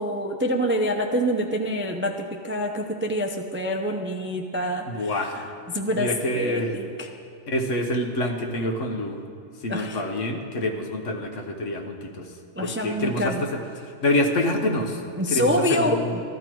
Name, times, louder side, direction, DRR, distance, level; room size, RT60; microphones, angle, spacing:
voice 1, 0.0-7.1 9.7-10.0 12.6-13.4 15.2-16.2, equal, 15° right, 2 dB, 0.4 m, -26 dB
voice 2, 4.9-5.4 5.9-6.7 7.5-9.2 9.6-12.3 12.6-15.0 15.3-16.2, left 1 dB, 70° left, 3 dB, 1.5 m, -26 dB
13.5 x 13.5 x 4.6 m, 2.3 s
omnidirectional pair, 1.3 m